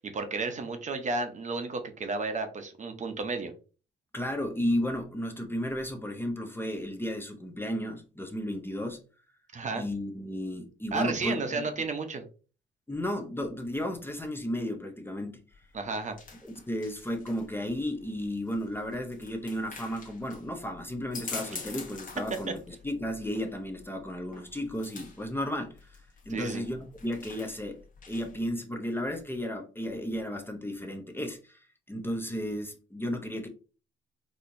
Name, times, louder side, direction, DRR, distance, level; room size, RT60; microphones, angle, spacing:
voice 1, 0.0-3.5 9.5-9.8 10.9-12.2 15.7-16.2 26.3-26.6, right 3 dB, 40° right, 0.7 m, -32 dB
voice 2, 4.1-9.0 9.7-11.6 12.9-15.4 16.7-27.8 28.1-33.5, left 1 dB, 10° left, 0.6 m, -34 dB
sound 1, 15.5-28.5, left 4 dB, 45° left, 1.1 m, -46 dB
4.3 x 2.8 x 2.6 m
cardioid pair, 90°, 20 cm